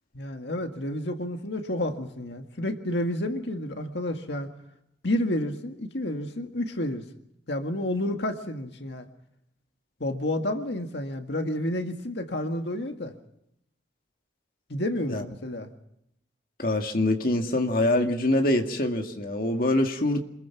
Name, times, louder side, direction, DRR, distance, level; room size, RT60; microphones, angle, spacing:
voice 1, 0.1-4.5 5.0-7.0 7.5-9.1 10.0-13.1 14.7-15.7, left 1 dB, 80° left, 5 dB, 1.9 m, -30 dB
voice 2, 16.6-20.2, left 1 dB, 50° left, 3 dB, 2.1 m, -24 dB
27.0 x 21.5 x 5.9 m, 0.79 s
head